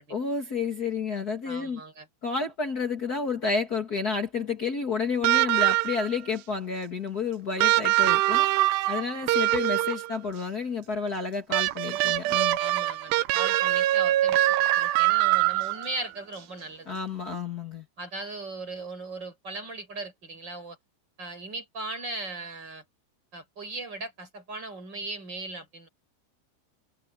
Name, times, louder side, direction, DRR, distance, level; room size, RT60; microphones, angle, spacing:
voice 1, 0.1-1.8 2.2-8.4 8.9-12.6 16.8-17.8, left 5 dB, 75° left, 0.8 m, -30 dB
voice 2, 1.4-2.1 12.6-16.9 18.0-20.8 21.2-22.8 23.3-25.9, right 2 dB, 20° right, 6.2 m, -38 dB
sound 1, 5.2-6.2 7.6-10.2 11.5-16.0 17.3-17.4, right 16 dB, 80° right, 2.6 m, -23 dB
omnidirectional pair, 5.5 m